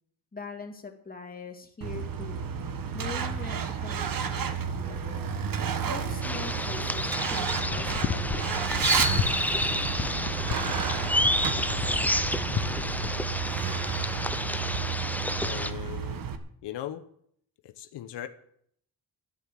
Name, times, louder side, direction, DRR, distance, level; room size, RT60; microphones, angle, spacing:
voice 1, 0.3-2.4 2.9-5.4 5.8-9.0, left 4 dB, 20° left, 3 dB, 2.3 m, -42 dB
Truck, 1.8-16.4, right 6 dB, 55° right, 1.5 m, -31 dB
sound 1, 6.2-15.7, left 1 dB, 5° left, 0.7 m, -30 dB
sound 2, 7.6-13.1, left 10 dB, 40° left, 0.6 m, -35 dB
voice 2, 15.4-16.2 16.6-17.0 17.6-18.3, left 12 dB, 85° left, 10 dB, 1.0 m, -38 dB
12.5 x 10.5 x 7.6 m, 0.67 s
cardioid pair, 120°, 41 cm